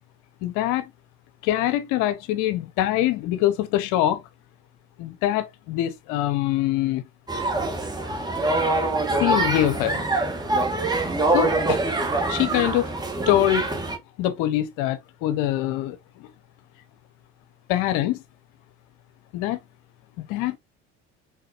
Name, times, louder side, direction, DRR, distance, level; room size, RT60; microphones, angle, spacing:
voice 1, 0.4-0.9 1.4-4.2 5.0-7.0 9.2-10.0 11.3-11.8 12.3-12.9 13.3-13.7 14.2-16.3 17.7-18.2 19.3-19.6 20.3-20.6, left 13 dB, 70° left, 0.8 m, -24 dB
sound 1, 7.3-14.0, right 2 dB, 10° right, 1.4 m, -24 dB
3.7 x 3.6 x 2.8 m
hypercardioid pair, 80°, 33 cm